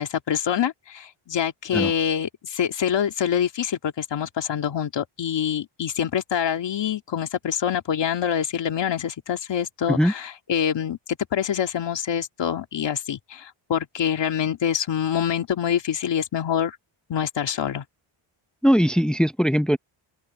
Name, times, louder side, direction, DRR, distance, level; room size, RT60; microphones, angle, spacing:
voice 1, 0.0-11.0 11.3-16.8 17.1-17.8, left 9 dB, 55° left, 2.3 m, -25 dB
voice 2, 18.6-19.8, equal, ahead, 0.8 m, -20 dB
open air
wide cardioid pair, 155°, 50 cm